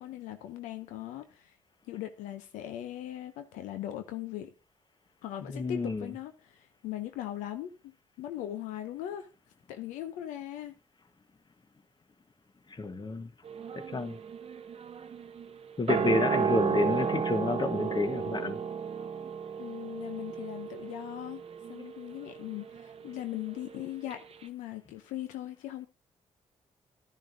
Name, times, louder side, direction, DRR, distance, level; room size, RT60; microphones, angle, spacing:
voice 1, 0.0-1.5 1.9-4.5 5.2-7.9 8.2-9.3 9.7-10.8 19.6-21.4 21.7-25.9, left 12 dB, 90° left, 0.5 m, -39 dB
voice 2, 5.5-6.1 12.7-13.3 13.7-14.2 15.8-18.6, left 3 dB, 35° left, 1.1 m, -30 dB
sound 1, 13.5-23.8 24.1-24.2, right 6 dB, 50° right, 0.7 m, -34 dB
11.0 x 10.0 x 2.6 m
supercardioid pair, 50°, 13 cm